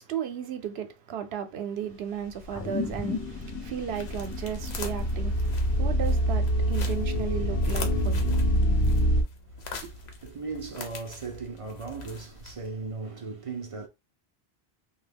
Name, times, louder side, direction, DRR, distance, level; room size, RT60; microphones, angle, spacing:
voice 1, 0.0-8.4 9.8-9.9, right 9 dB, 80° right, 0.9 m, -35 dB
sound 1, 1.9-13.0, left 4 dB, 85° left, 0.9 m, -44 dB
sound 2, 2.4-9.2, equal, 55° left, 0.7 m, -26 dB
sound 3, 2.5-7.3, left 5 dB, 35° left, 0.3 m, -38 dB
voice 2, 9.5-13.9, right 4 dB, 50° right, 0.4 m, -38 dB
2.8 x 2.3 x 3.4 m
omnidirectional pair, 1.1 m